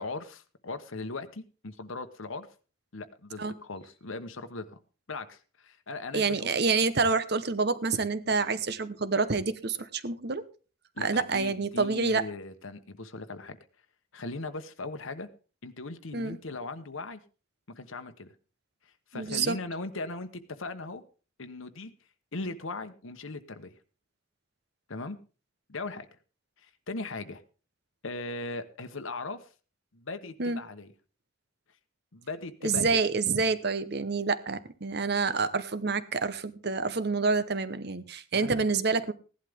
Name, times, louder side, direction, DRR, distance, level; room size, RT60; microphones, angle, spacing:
voice 1, 0.0-2.5 2.9-4.8 5.1-6.5 11.0-13.6 14.1-15.3 15.6-17.2 17.7-18.3 19.1-21.0 21.4-21.9 22.3-23.7 24.9-25.2 25.7-26.1 26.6-27.4 28.0-29.5 29.9-30.9 32.1-33.0 38.3-38.7, left 3 dB, 75° left, 9 dB, 1.1 m, -39 dB
voice 2, 6.1-10.4 11.0-12.3 16.1-16.4 19.1-19.6 30.4-30.6 32.6-39.1, right 4 dB, 50° right, 14 dB, 0.9 m, -28 dB
16.0 x 11.5 x 3.5 m, 0.35 s
head